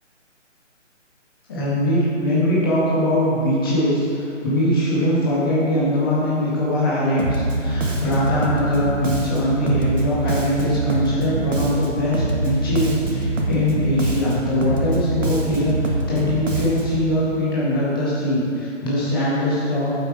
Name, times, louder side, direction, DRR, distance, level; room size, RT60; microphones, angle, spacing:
voice 1, 1.5-19.9, left 1 dB, 20° left, -8 dB, 1.4 m, -21 dB
Bass guitar, 7.2-17.1, right 2 dB, 80° right, 1.6 m, -24 dB
8.9 x 7.9 x 4.8 m, 2.5 s
hypercardioid pair, 165°, 38 cm